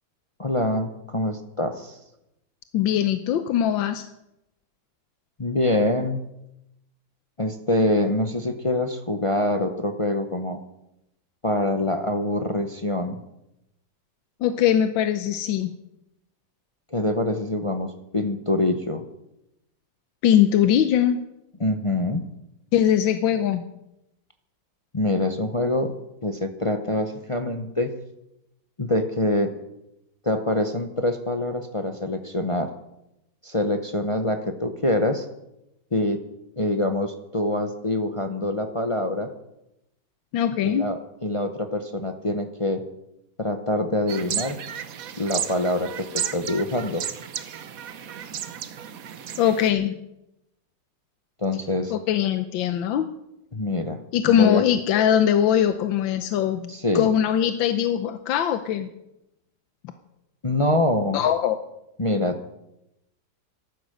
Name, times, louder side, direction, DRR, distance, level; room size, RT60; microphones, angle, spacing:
voice 1, 0.4-2.0 5.4-6.2 7.4-10.6 11.4-13.2 16.9-19.0 21.6-22.2 24.9-25.9 26.2-27.9 28.8-29.5 30.2-32.7 33.4-35.3 35.9-36.2 36.6-39.3 40.6-42.8 43.4-44.6 45.2-47.0 51.4-51.9 53.5-54.6 56.7-57.1 60.4-61.2 62.0-62.4, left 1 dB, 40° left, 6 dB, 0.4 m, -25 dB
voice 2, 2.7-4.1 14.4-15.7 20.2-21.2 22.7-23.6 40.3-40.8 49.4-49.9 51.9-53.1 54.1-58.9 61.1-61.6, left 10 dB, 90° left, 9 dB, 1.5 m, -21 dB
sound 1, 44.1-49.7, right 9 dB, 55° right, 1.1 m, -33 dB
14.0 x 12.0 x 6.6 m, 0.88 s
omnidirectional pair, 2.0 m